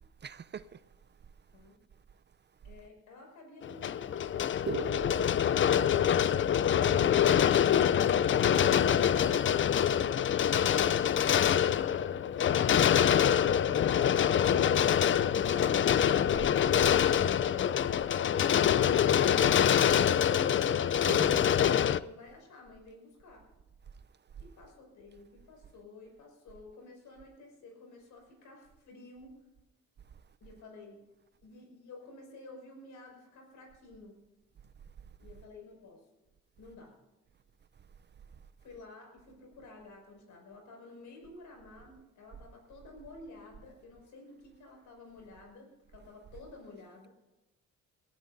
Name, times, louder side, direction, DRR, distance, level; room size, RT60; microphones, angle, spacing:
voice 1, 0.2-0.6 4.7-5.4 21.0-21.4, right 8 dB, 35° right, 0.6 m, -38 dB
voice 2, 2.6-4.5 20.1-23.5 24.4-29.4 30.4-31.0 31.4-34.2 35.2-36.1 36.6-37.0 38.6-47.1, left 2 dB, 75° left, 6.0 m, -51 dB
sound 1, 3.6-22.0, left 9 dB, 40° left, 0.5 m, -25 dB
21.0 x 15.5 x 2.7 m
cardioid pair, 90°, 30 cm